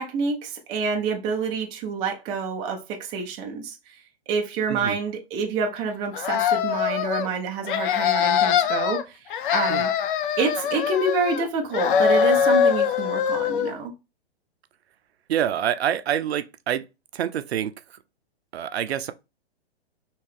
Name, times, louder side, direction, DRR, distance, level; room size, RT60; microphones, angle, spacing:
voice 1, 0.0-3.9 4.3-9.2 9.5-9.9 10.4-13.9, right 4 dB, 15° right, 0.3 m, -27 dB
sound 1, 6.1-7.3 7.6-9.0 9.3-11.5 11.7-13.7, left 8 dB, 55° left, 0.5 m, -22 dB
voice 2, 15.3-16.8 17.1-18.0 18.5-19.1, right 10 dB, 70° right, 0.5 m, -26 dB
3.2 x 2.9 x 3.2 m
hypercardioid pair, 125°, 33 cm